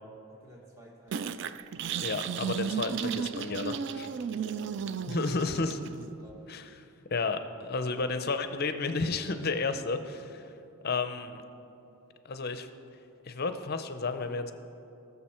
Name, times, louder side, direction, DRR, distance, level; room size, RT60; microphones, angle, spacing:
voice 1, 0.3-1.5 4.0-5.3 5.7-6.4, equal, 15° right, -1 dB, 1.3 m, -53 dB
sound 1, 1.1-6.1, right 7 dB, 55° right, 0.3 m, -34 dB
voice 2, 2.0-4.1 5.1-5.8 6.5-6.6 7.1-10.5 10.8-11.4 12.2-12.7 13.2-14.5, left 4 dB, 45° left, 9 dB, 0.6 m, -32 dB
19.0 x 7.0 x 4.3 m, 2.8 s
head